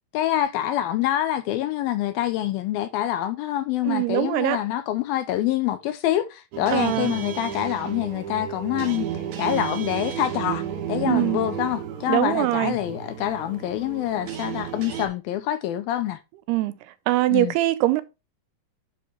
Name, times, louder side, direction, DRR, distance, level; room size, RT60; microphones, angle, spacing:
voice 1, 0.1-9.1 9.4-16.2 17.3-17.5, left 12 dB, 80° left, 2.2 m, -26 dB
voice 2, 3.9-4.6 6.7-7.1 11.0-11.4 12.1-12.7 16.5-16.8 17.1-18.0, right 16 dB, 85° right, 2.7 m, -22 dB
sound 1, 6.5-15.1, right 9 dB, 60° right, 2.3 m, -33 dB
7.7 x 6.7 x 3.3 m
omnidirectional pair, 4.7 m